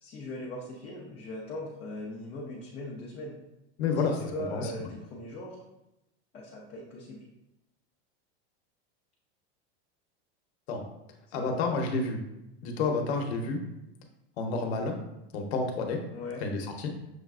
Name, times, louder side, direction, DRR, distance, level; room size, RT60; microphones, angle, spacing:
voice 1, 0.0-3.3 4.2-5.6 6.3-7.2 11.3-12.1 16.1-16.4, left 1 dB, 20° left, -4 dB, 0.4 m, -40 dB
voice 2, 3.8-4.7 10.7-10.8 11.3-12.2 12.6-13.6 14.4-14.9 15.3-16.0 16.4-16.9, left 4 dB, 85° left, 3 dB, 0.8 m, -30 dB
6.4 x 2.3 x 2.3 m, 0.91 s
supercardioid pair, 155°, 32 cm